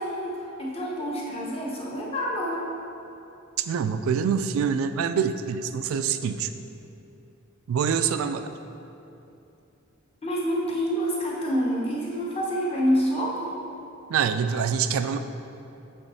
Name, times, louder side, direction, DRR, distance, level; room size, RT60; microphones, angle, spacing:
voice 1, 0.0-2.6 10.2-13.5, equal, 30° left, -4 dB, 1.0 m, -27 dB
voice 2, 3.6-6.5 7.7-8.5 14.1-15.2, right 7 dB, 75° right, 10 dB, 0.3 m, -25 dB
8.1 x 3.1 x 4.1 m, 2.8 s
head